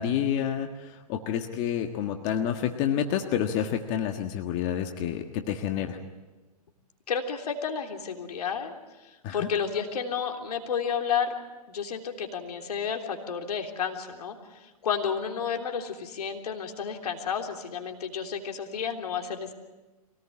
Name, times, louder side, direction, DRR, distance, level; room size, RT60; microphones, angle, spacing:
voice 1, 0.0-6.0 9.2-9.5, left 9 dB, 35° left, 5 dB, 1.6 m, -29 dB
voice 2, 7.1-8.7 9.3-11.3 11.7-14.4 14.8-19.5, left 7 dB, 75° left, 3 dB, 3.5 m, -31 dB
24.0 x 18.5 x 8.7 m, 1.2 s
hypercardioid pair, 135°, 20 cm